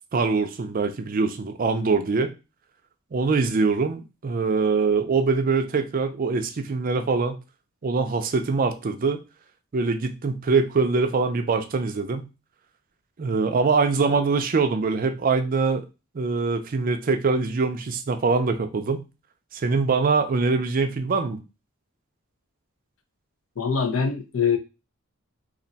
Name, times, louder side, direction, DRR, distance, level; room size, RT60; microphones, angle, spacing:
voice 1, 0.1-2.3 3.1-7.4 7.8-9.2 9.7-12.3 13.2-15.9 16.1-19.0 19.5-21.4, right 4 dB, 40° right, 7 dB, 0.4 m, -23 dB
voice 2, 23.6-24.6, left 6 dB, 70° left, 6 dB, 0.6 m, -24 dB
2.4 x 2.2 x 3.9 m, 0.28 s
head